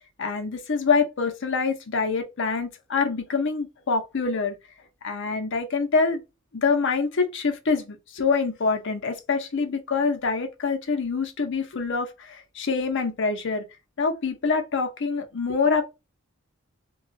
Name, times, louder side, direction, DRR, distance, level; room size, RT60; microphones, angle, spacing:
voice 1, 0.2-4.6 5.0-6.2 6.5-13.7 14.0-15.8, left 4 dB, 60° left, 0.7 m, -25 dB
2.9 x 2.3 x 2.6 m
head